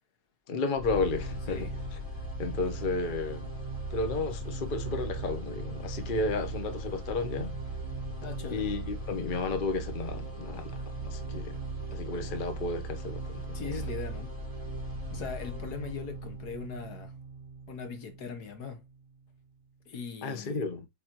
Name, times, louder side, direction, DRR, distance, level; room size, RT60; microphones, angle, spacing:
voice 1, 0.5-1.7 2.4-3.5 3.9-7.6 8.5-11.6 11.9-13.8 20.2-20.9, left 3 dB, 35° left, 1.0 m, -33 dB
sound 1, 0.8-18.8, right 2 dB, 15° right, 3.9 m, -38 dB
voice 2, 8.2-8.7 13.5-14.3 15.1-17.1 17.7-18.8 19.9-20.6, left 6 dB, 60° left, 1.6 m, -40 dB
8.4 x 4.0 x 2.9 m
omnidirectional pair, 2.0 m